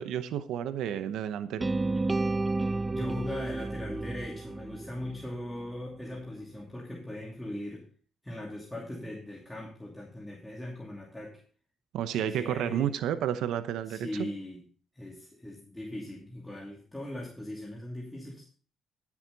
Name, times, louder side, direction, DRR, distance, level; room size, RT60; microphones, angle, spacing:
voice 1, 0.0-1.7 11.9-14.3, right 10 dB, 80° right, 12 dB, 0.8 m, -31 dB
sound 1, 1.6-5.7, right 2 dB, 20° right, 0.4 m, -31 dB
voice 2, 2.9-7.9 8.2-11.4 12.1-12.9 13.9-14.6 14.9-18.4, left 1 dB, 10° left, -2 dB, 2.6 m, -39 dB
14.5 x 7.4 x 4.0 m, 0.42 s
cardioid pair, 90°, 0 cm